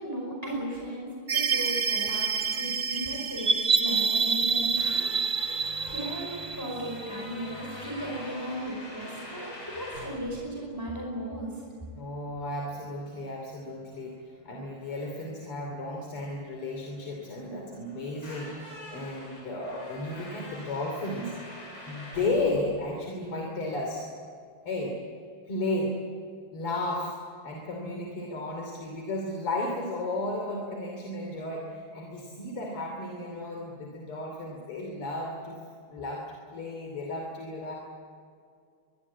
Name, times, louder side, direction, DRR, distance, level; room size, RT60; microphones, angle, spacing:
voice 1, 0.0-6.3 6.5-11.5, right 1 dB, 10° left, -1 dB, 4.9 m, -36 dB
sound 1, 1.3-7.5, right 5 dB, 40° right, 1.3 m, -27 dB
sound 2, 4.5-23.4, left 1 dB, 65° left, 8.4 m, -45 dB
voice 2, 11.9-21.3 21.9-24.1 24.7-25.0 25.5-26.0 26.5-27.2 27.4-35.6 35.9-37.7, left 2 dB, 80° left, 1 dB, 3.8 m, -34 dB
23.5 x 23.0 x 8.5 m, 2.3 s
omnidirectional pair, 2.4 m